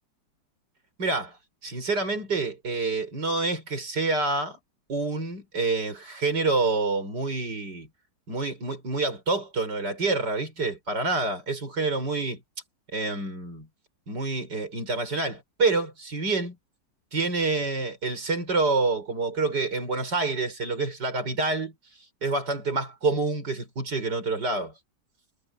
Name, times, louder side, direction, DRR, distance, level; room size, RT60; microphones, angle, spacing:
voice 1, 1.0-4.6 4.9-7.9 8.3-12.4 12.9-13.7 14.1-16.5 17.1-24.7, right 3 dB, 75° right, 6.5 m, -27 dB
omnidirectional pair, 1.9 m